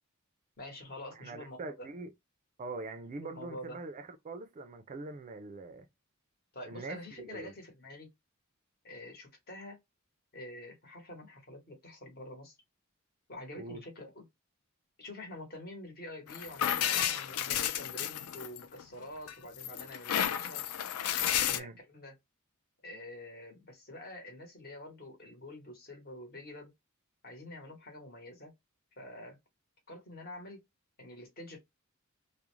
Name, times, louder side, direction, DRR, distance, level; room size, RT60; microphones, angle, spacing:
voice 1, 0.6-1.9 3.2-3.8 6.5-8.1 8.8-9.8 10.3-12.6 13.3-14.3 15.0-20.7 21.1-22.2 22.8-26.7 27.2-28.5 29.0-29.4 29.9-30.6 31.0-31.6, left 1 dB, 45° left, 1.0 m, -47 dB
voice 2, 1.1-2.1 2.6-5.9 6.6-7.5 13.5-13.8 21.5-21.8, right 3 dB, 35° right, 0.3 m, -43 dB
sound 1, 16.3-18.8 19.3-21.6, left 10 dB, 75° left, 0.3 m, -32 dB
2.4 x 2.0 x 3.0 m
head